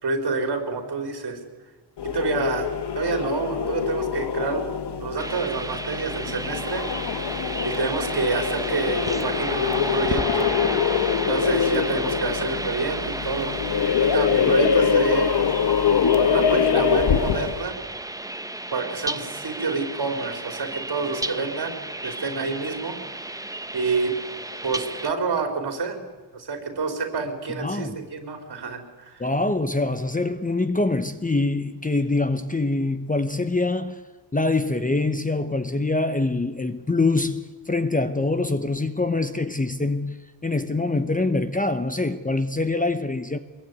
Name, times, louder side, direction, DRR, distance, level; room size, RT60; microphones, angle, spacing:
voice 1, 0.0-1.4 2.1-4.7 5.0-6.9 7.6-10.5 11.3-13.6 14.0-15.4 16.2-17.7 18.7-21.7 22.0-23.0 23.7-24.1 24.6-26.0 26.3-29.2, right 4 dB, 60° right, 4.5 m, -28 dB
sound 1, 2.0-17.7, left 7 dB, 65° left, 1.4 m, -24 dB
sound 2, 5.2-25.1, right 2 dB, 10° right, 0.8 m, -33 dB
voice 2, 27.6-28.0 29.2-34.0 34.3-43.4, left 2 dB, 20° left, 1.0 m, -24 dB
24.0 x 22.0 x 9.5 m
wide cardioid pair, 165°, 44 cm